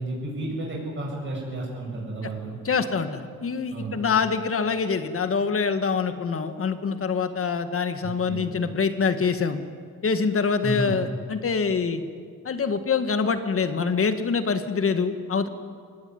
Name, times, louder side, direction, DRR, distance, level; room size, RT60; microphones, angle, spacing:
voice 1, 0.0-2.6 3.7-4.0 8.0-8.5 10.6-11.0, right 2 dB, 35° right, -3 dB, 7.8 m, -32 dB
voice 2, 2.6-9.6 10.0-12.0 12.4-15.5, left 5 dB, 40° left, 9 dB, 1.9 m, -25 dB
24.5 x 18.0 x 9.8 m, 2.1 s
cardioid pair, 105°, 33 cm